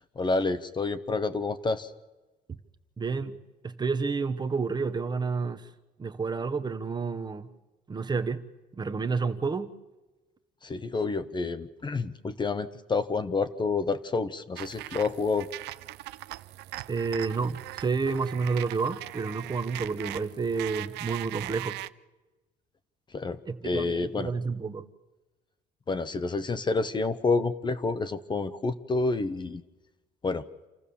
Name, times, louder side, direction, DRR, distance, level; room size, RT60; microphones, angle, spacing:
voice 1, 0.2-1.9 10.6-15.5 23.1-23.4 23.6-24.3 25.9-29.6 30.2-30.4, left 3 dB, 25° left, 0.9 m, -29 dB
voice 2, 3.0-3.4 3.6-5.7 6.0-7.5 7.9-8.4 8.7-9.7 16.9-21.8 23.4-24.8, right 4 dB, 25° right, 1.1 m, -30 dB
sound 1, 14.6-21.9, right 17 dB, 85° right, 0.6 m, -40 dB
28.0 x 14.0 x 7.0 m
cardioid pair, 110°, 17 cm